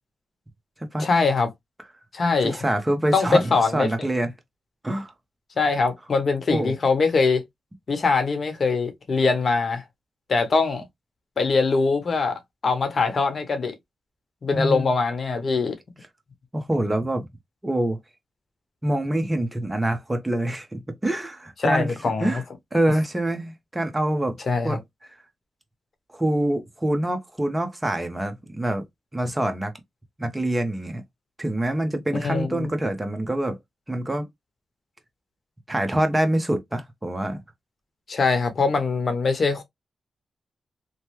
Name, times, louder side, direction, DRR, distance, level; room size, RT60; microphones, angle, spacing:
voice 1, 1.0-1.5 2.1-2.6 3.1-3.9 5.6-7.4 7.9-9.8 10.3-10.8 11.4-13.7 14.4-15.8 21.6-22.4 24.5-24.8 32.1-32.7 38.1-39.6, left 4 dB, 55° left, 1.0 m, -22 dB
voice 2, 2.4-4.3 4.8-5.1 6.5-6.7 14.5-14.9 16.5-17.3 17.6-18.0 18.8-22.0 22.2-22.4 22.7-24.4 24.6-24.8 26.1-28.8 29.1-29.7 30.2-31.0 31.4-33.6 33.9-34.3 35.7-37.4, right 1 dB, 20° right, 0.9 m, -25 dB
3.1 x 2.2 x 3.1 m
cardioid pair, 70°, 0 cm